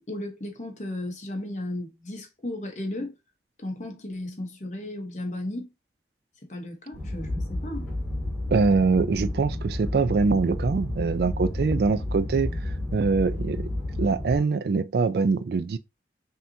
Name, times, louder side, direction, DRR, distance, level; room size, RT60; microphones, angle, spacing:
voice 1, 0.1-3.1 3.6-5.7 6.5-7.9, left 1 dB, 40° left, 1.0 m, -35 dB
sound 1, 6.9-14.4, left 1 dB, 5° left, 2.5 m, -31 dB
voice 2, 8.5-13.7 14.0-15.8, right 4 dB, 65° right, 0.3 m, -24 dB
5.6 x 2.8 x 2.7 m
head